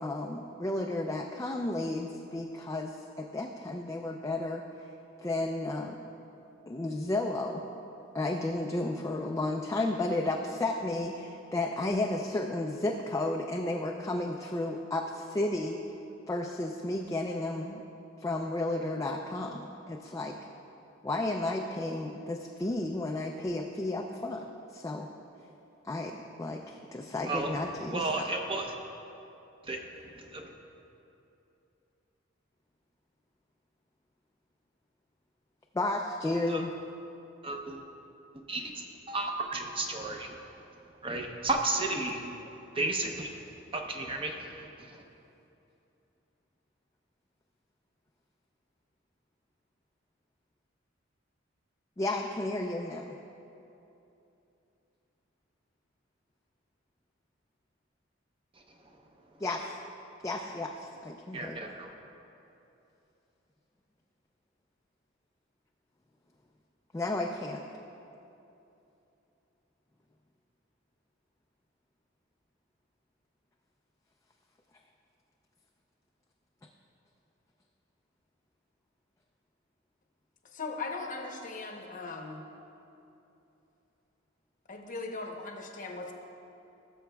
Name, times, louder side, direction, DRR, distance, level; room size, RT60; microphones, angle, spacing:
voice 1, 0.0-4.6 5.2-6.0 6.7-7.6 8.1-15.8 16.3-17.8 18.2-20.4 21.0-25.1 25.8-28.1 35.7-36.7 52.0-53.1 59.4-59.7 60.2-61.6 66.9-67.6, left 2 dB, 15° left, 1 dB, 0.3 m, -33 dB
voice 2, 27.3-27.6 27.9-28.7 29.6-29.9 30.1-30.5 36.5-36.6 37.4-37.8 38.3-40.3 41.0-42.3 42.7-43.3 43.7-45.0 61.3-61.9, right 2 dB, 25° right, 2 dB, 0.7 m, -33 dB
voice 3, 80.5-82.4 84.7-86.1, left 3 dB, 45° left, 2 dB, 0.8 m, -38 dB
17.5 x 7.0 x 2.3 m, 2.9 s
head